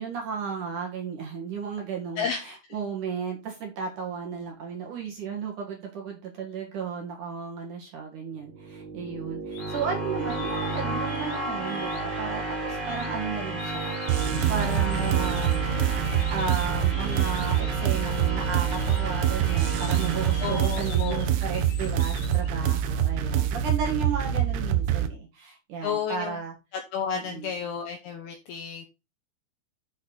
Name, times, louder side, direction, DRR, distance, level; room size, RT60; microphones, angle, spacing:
voice 1, 0.0-15.6 16.3-26.5 27.1-27.5, right 6 dB, 60° right, 1 dB, 2.3 m, -34 dB
voice 2, 2.2-2.6 20.4-21.3 25.8-26.4 26.9-28.9, left 7 dB, 80° left, 5 dB, 2.4 m, -31 dB
sound 1, 8.4-21.4, right 2 dB, 10° right, 2.6 m, -33 dB
sound 2, 9.5-9.9 10.3-11.4 11.6-12.2 12.8-13.1 13.6-17.9 18.5-22.5, left 6 dB, 55° left, 3.1 m, -45 dB
sound 3, 14.1-25.1, right 10 dB, 80° right, 3.3 m, -25 dB
8.5 x 6.8 x 3.9 m, 0.27 s
omnidirectional pair, 5.7 m